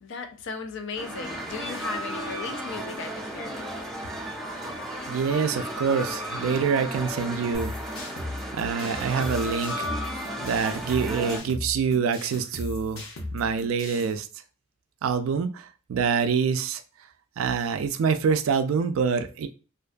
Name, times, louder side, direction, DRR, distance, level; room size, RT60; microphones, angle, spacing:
voice 1, 0.0-3.9, left 5 dB, 60° left, 0.4 m, -36 dB
sound 1, 0.9-11.4, equal, ahead, 0.8 m, -34 dB
voice 2, 5.1-7.7 8.5-9.9 10.4-13.0 13.3-14.3 15.0-16.8 17.4-19.5, right 6 dB, 80° right, 0.3 m, -26 dB
sound 2, 7.5-14.1, left 2 dB, 85° left, 0.8 m, -37 dB
2.5 x 2.2 x 2.4 m
head